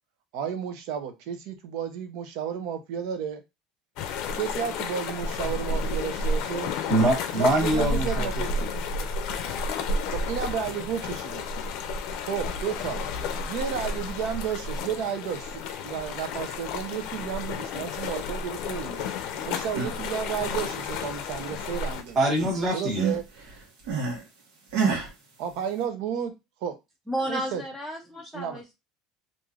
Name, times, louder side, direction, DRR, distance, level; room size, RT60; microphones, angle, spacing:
voice 1, 0.3-3.4 4.3-6.7 7.4-8.8 10.1-11.4 12.3-13.0 13.5-19.0 19.4-22.2 22.7-23.2 25.4-26.3 26.6-26.8 27.3-27.6 28.3-28.6, right 8 dB, 65° right, 0.6 m, -32 dB
sound 1, 4.0-22.0, left 3 dB, 60° left, 0.5 m, -31 dB
voice 2, 6.9-8.7 22.1-23.1, right 1 dB, 25° right, 1.0 m, -24 dB
sound 2, 19.5-20.0 20.4-21.8 22.1-24.2 24.7-25.1, right 5 dB, 85° right, 1.1 m, -30 dB
voice 3, 27.1-28.7, right 1 dB, ahead, 0.4 m, -32 dB
3.1 x 2.5 x 2.4 m
cardioid pair, 160°, 0 cm